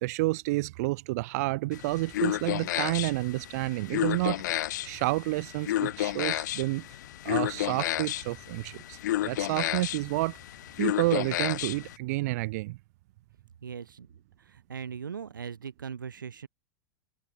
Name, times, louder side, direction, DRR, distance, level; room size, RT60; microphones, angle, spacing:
voice 1, 0.0-4.4 4.8-6.9 7.2-10.4 10.8-12.8, right 21 dB, 50° right, 1.0 m, -30 dB
sound 1, 1.7-12.0, left 14 dB, 60° left, 2.8 m, -32 dB
voice 2, 13.6-14.1 14.5-16.5, right 7 dB, 75° right, 2.5 m, -39 dB
figure-of-eight pair, 90°, 11 cm